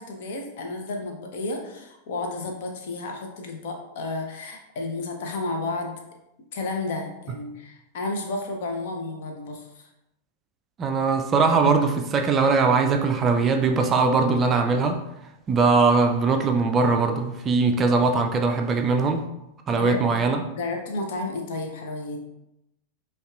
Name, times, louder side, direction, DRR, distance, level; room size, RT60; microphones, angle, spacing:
voice 1, 0.0-6.0 6.5-9.9 19.7-20.0 20.5-22.2, left 2 dB, 55° left, 3 dB, 0.7 m, -32 dB
voice 2, 10.8-15.0 15.5-19.2 19.7-20.4, right 4 dB, 25° right, 5 dB, 0.4 m, -21 dB
5.2 x 2.3 x 2.4 m, 0.87 s
figure-of-eight pair, 90°, 0 cm